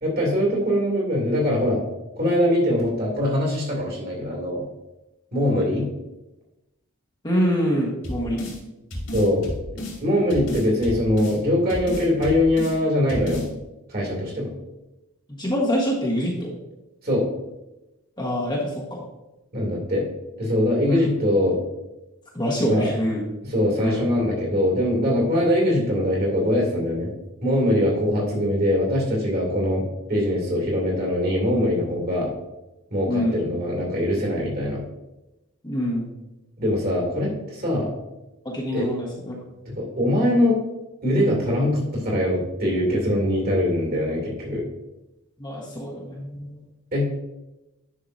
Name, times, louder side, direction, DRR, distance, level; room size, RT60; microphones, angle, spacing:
voice 1, 0.0-1.8 2.2-4.6 5.3-5.9 9.1-13.4 13.9-14.5 17.0-17.3 19.5-20.0 20.4-21.6 22.6-22.9 23.4-27.1 27.4-32.3 32.9-34.8 36.6-37.9 38.7-38.9 39.8-40.6 41.0-44.6 46.9-47.1, left 1 dB, 40° right, -2 dB, 2.6 m, -22 dB
voice 2, 7.2-8.4 15.4-16.5 18.2-19.0 20.9-21.0 22.3-23.2 23.8-24.0 33.1-33.4 35.6-36.1 38.4-39.4 45.4-46.6, equal, 20° left, -4 dB, 1.3 m, -25 dB
sound 1, 8.0-8.6 8.9-10.0 10.3-11.4 11.7-12.8 13.1-13.5, left 1 dB, 60° left, 2.5 m, -32 dB
10.5 x 5.8 x 2.7 m, 0.97 s
head